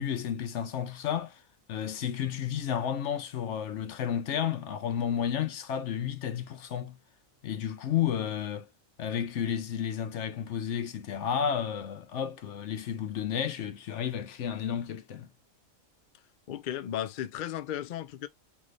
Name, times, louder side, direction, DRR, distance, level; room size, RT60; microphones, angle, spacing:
voice 1, 0.0-1.4 1.7-7.0 7.4-8.7 9.0-15.3, left 8 dB, 60° left, 1.0 m, -32 dB
voice 2, 16.5-18.3, left 11 dB, 85° left, 0.4 m, -35 dB
3.8 x 3.4 x 3.2 m
omnidirectional pair, 1.4 m